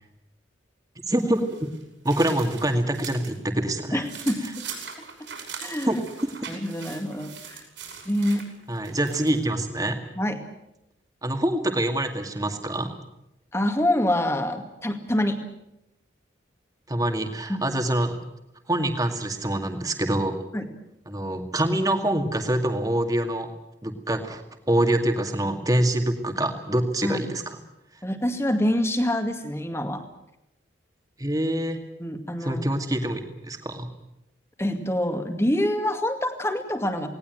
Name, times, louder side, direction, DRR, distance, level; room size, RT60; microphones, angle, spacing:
voice 1, 1.1-1.4 2.0-4.0 5.8-6.3 8.7-10.0 11.2-13.0 16.9-18.2 18.7-20.3 21.1-23.5 23.8-27.6 31.2-31.8 32.4-33.9, right 1 dB, 20° right, 5 dB, 2.2 m, -25 dB
sound 1, 1.2-3.3 3.7-9.5, right 6 dB, 75° right, 6.1 m, -41 dB
voice 2, 3.9-4.7 5.6-6.0 6.5-7.6 8.1-8.4 10.2-10.4 13.5-15.4 17.5-17.6 20.5-20.7 27.0-27.2 28.0-30.0 32.0-32.6 34.6-37.1, left 1 dB, 15° left, 6 dB, 2.2 m, -26 dB
19.0 x 18.5 x 9.2 m, 0.86 s
head